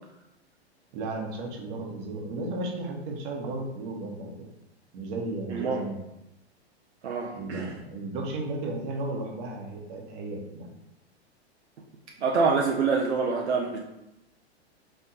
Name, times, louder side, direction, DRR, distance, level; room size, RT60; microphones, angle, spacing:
voice 1, 0.9-4.3 4.9-6.0 7.3-10.7, right 2 dB, 50° right, 0 dB, 1.3 m, -34 dB
voice 2, 5.5-5.8 7.0-7.7 12.2-13.8, right 4 dB, 80° right, -1 dB, 0.7 m, -26 dB
3.6 x 3.4 x 4.2 m, 0.90 s
hypercardioid pair, 110°, 33 cm